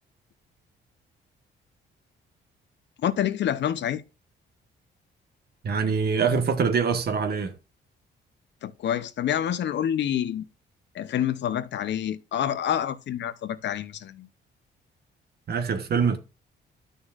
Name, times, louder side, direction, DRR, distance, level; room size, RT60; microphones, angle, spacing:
voice 1, 3.0-4.0 8.6-10.5 10.9-14.3, left 10 dB, 65° left, 0.7 m, -27 dB
voice 2, 5.6-7.5 15.5-16.2, right 6 dB, 55° right, 1.3 m, -24 dB
11.0 x 6.5 x 2.4 m
cardioid pair, 90°, 20 cm